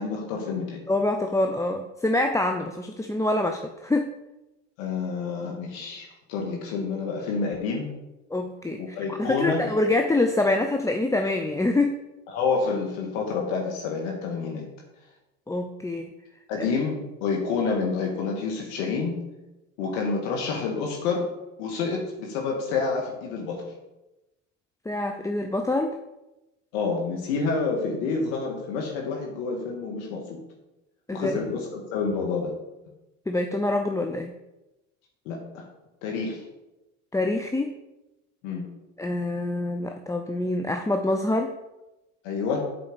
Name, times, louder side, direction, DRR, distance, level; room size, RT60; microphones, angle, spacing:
voice 1, 0.0-0.8 4.8-7.9 8.8-9.6 12.3-14.7 16.5-19.2 19.8-21.2 21.6-23.7 26.7-30.4 31.1-32.5 35.3-35.6 36.0-36.4 38.4-38.6 42.2-42.6, left 4 dB, 70° left, 0 dB, 2.0 m, -28 dB
voice 2, 0.9-4.1 8.3-11.9 15.5-16.1 16.6-16.7 24.9-26.0 31.1-31.4 33.3-34.3 37.1-37.7 39.0-41.5, left 2 dB, 10° left, 4 dB, 0.6 m, -25 dB
7.7 x 5.1 x 6.9 m, 0.99 s
hypercardioid pair, 85°, 37 cm